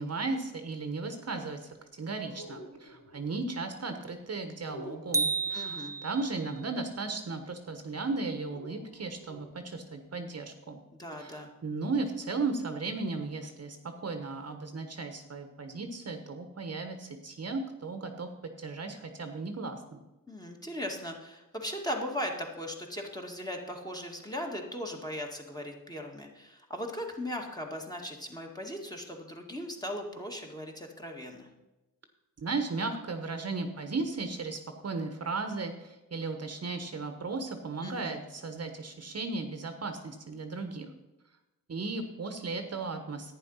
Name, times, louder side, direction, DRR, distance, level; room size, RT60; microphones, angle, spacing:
voice 1, 0.0-1.6 2.0-10.8 11.2-13.8 14.0-18.3 18.6-20.0 32.4-40.9 41.7-43.3, right 3 dB, 45° right, 6 dB, 1.1 m, -35 dB
sound 1, 2.2-3.2 4.6-5.4 8.5-9.5, equal, 55° left, 3.7 m, -48 dB
sound 2, 5.1-6.5, right 3 dB, 10° right, 0.4 m, -31 dB
voice 2, 5.5-5.9 10.9-11.5 20.3-31.5 37.8-38.2, equal, 10° left, 1 dB, 2.0 m, -38 dB
11.0 x 9.3 x 5.6 m, 1.0 s
cardioid pair, 90°, 35 cm